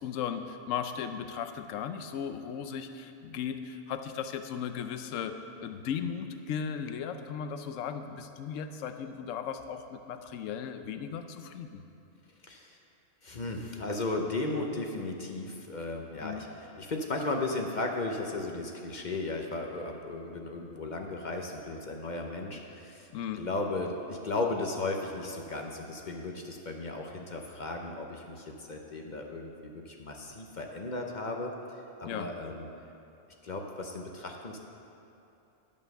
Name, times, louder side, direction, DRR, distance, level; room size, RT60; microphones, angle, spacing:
voice 1, 0.0-5.4 5.6-11.8 16.2-16.5 23.1-23.5 32.0-32.3, left 7 dB, 80° left, 8 dB, 1.0 m, -36 dB
voice 2, 12.4-12.8 13.2-23.1 23.4-31.5 32.0-32.7 33.4-34.6, left 2 dB, 45° left, 2 dB, 0.7 m, -35 dB
11.0 x 5.3 x 6.4 m, 2.8 s
omnidirectional pair, 1.3 m